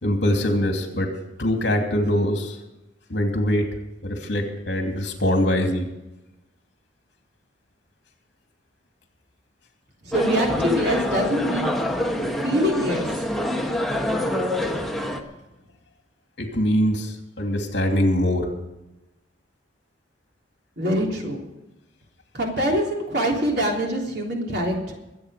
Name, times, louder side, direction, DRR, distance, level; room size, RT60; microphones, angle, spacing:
voice 1, 0.0-1.1 1.4-2.6 3.1-3.7 4.0-5.9 16.4-18.5, equal, 65° left, 3 dB, 2.8 m, -23 dB
voice 2, 10.0-11.8 12.4-13.2 20.8-21.4 22.3-24.9, equal, 60° right, 0 dB, 3.5 m, -24 dB
sound 1, 10.1-15.2, left 1 dB, ahead, 1.2 m, -25 dB
23.0 x 8.7 x 5.1 m, 0.98 s
head